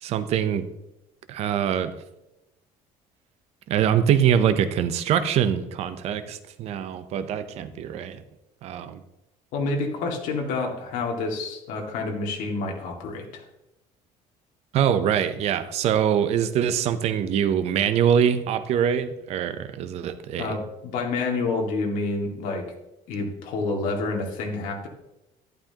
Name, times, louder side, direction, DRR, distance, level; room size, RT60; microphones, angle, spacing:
voice 1, 0.0-0.7 1.3-1.9 3.7-8.2 8.6-9.0 14.7-20.6, right 9 dB, 50° right, 11 dB, 0.7 m, -23 dB
voice 2, 9.5-13.4 20.4-22.7 23.1-24.9, left 3 dB, 70° left, 2 dB, 2.1 m, -28 dB
11.5 x 11.5 x 2.9 m, 0.91 s
cardioid pair, 175°, 14 cm